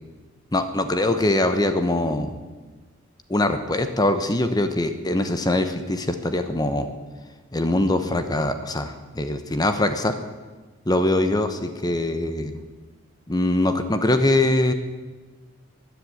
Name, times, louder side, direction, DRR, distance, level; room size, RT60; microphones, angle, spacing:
voice 1, 0.5-2.4 3.3-6.9 7.5-10.1 10.9-12.6 13.3-14.7, left 1 dB, 20° left, 8 dB, 0.9 m, -22 dB
14.0 x 10.0 x 9.4 m, 1.3 s
head